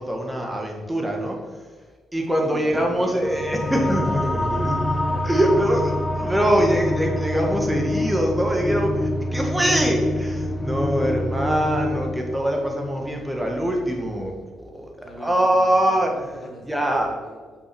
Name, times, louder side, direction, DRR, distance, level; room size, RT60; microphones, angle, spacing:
voice 1, 0.0-1.4 2.1-14.9 15.2-16.1 16.7-17.1, right 1 dB, 15° right, 1 dB, 1.8 m, -23 dB
voice 2, 2.2-4.8 5.1-5.9 11.0-11.1 15.0-17.7, left 2 dB, 50° left, 1 dB, 1.8 m, -40 dB
sound 1, 3.2-14.1, left 1 dB, 15° left, 0.9 m, -26 dB
6.0 x 5.4 x 6.0 m, 1.4 s
hypercardioid pair, 45°, 0 cm